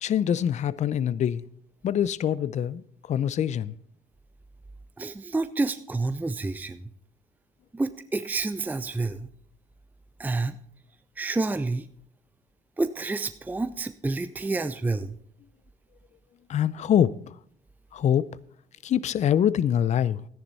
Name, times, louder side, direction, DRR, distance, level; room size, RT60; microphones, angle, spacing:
voice 1, 0.0-1.4 1.8-2.8 3.1-3.7 16.5-17.1 17.9-18.3 18.8-20.3, left 9 dB, 45° left, 0.5 m, -24 dB
voice 2, 5.0-6.8 7.7-9.3 10.2-10.6 11.2-11.9 12.8-15.1, right 3 dB, 10° right, 0.6 m, -29 dB
14.0 x 10.0 x 4.1 m
cardioid pair, 110°, 17 cm